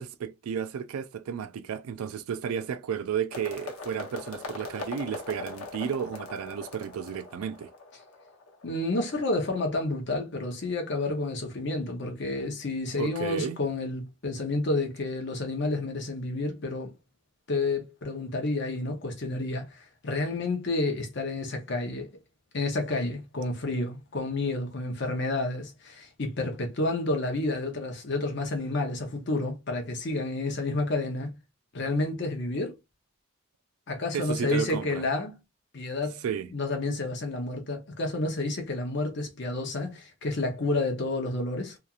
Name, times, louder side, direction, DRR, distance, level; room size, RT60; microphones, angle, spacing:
voice 1, 0.0-7.7 13.0-13.6 34.1-35.0 36.2-36.5, right 7 dB, 80° right, 0.3 m, -33 dB
sound 1, 3.3-9.2, left 3 dB, 85° left, 0.8 m, -41 dB
voice 2, 8.6-16.9 17.5-22.1 22.5-31.3 31.7-32.7 33.9-35.4 35.7-36.2 36.5-41.8, left 2 dB, 55° left, 0.7 m, -30 dB
2.8 x 2.4 x 2.3 m
head